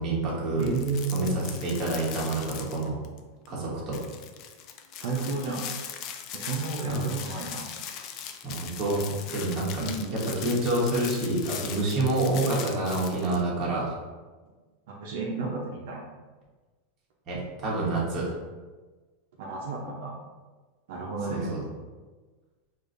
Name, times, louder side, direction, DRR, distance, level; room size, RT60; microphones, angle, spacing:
voice 1, 0.0-0.6 1.1-3.0 3.5-4.0 6.8-7.0 8.4-9.9 10.4-14.0 17.3-18.4 21.3-21.6, right 2 dB, 30° right, -5 dB, 1.1 m, -28 dB
sound 1, 0.6-3.2 3.5-3.6 3.9-13.4, left 8 dB, 40° left, 0.3 m, -40 dB
voice 2, 0.6-1.3 5.0-5.6 6.3-7.6 9.8-10.2 14.9-16.0 19.4-20.1 20.9-21.5, right 4 dB, 70° right, -3 dB, 0.6 m, -32 dB
4.6 x 2.5 x 2.5 m, 1.3 s
supercardioid pair, 150°, 0 cm